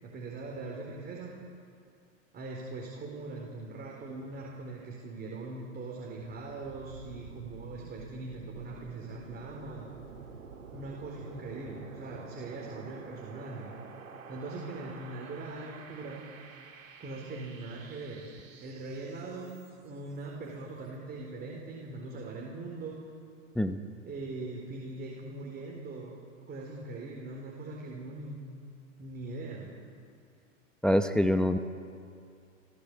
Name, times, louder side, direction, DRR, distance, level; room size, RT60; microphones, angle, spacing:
voice 1, 0.0-1.4 2.3-9.9 10.7-13.7 14.3-16.5 17.0-18.3 18.6-23.1 24.0-26.2 26.5-28.6 29.0-29.8, right 3 dB, 25° right, -1 dB, 4.2 m, -41 dB
sound 1, 6.2-20.0, right 5 dB, 80° right, 2.5 m, -49 dB
voice 2, 30.8-31.6, equal, ahead, 8 dB, 0.8 m, -25 dB
30.0 x 16.0 x 8.3 m, 2.4 s
hypercardioid pair, 105°, 39 cm